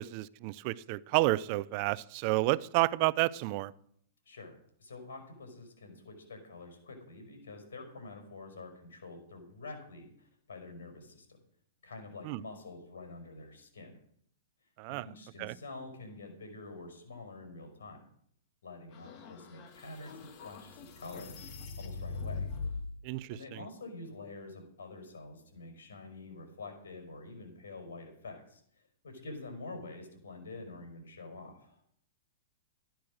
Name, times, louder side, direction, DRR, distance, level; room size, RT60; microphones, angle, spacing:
voice 1, 0.0-3.7 12.2-12.4 14.8-15.1 15.4-15.5 23.0-23.4, right 19 dB, 45° right, 20 dB, 0.5 m, -30 dB
voice 2, 4.8-11.3 11.8-14.0 14.9-18.0 18.6-21.4 21.8-22.5 23.3-31.8, left 3 dB, 80° left, 4 dB, 5.4 m, -47 dB
sound 1, 18.9-22.9, left 4 dB, 40° left, 2.2 m, -41 dB
13.5 x 10.5 x 6.3 m, 0.65 s
hypercardioid pair, 130°, 0 cm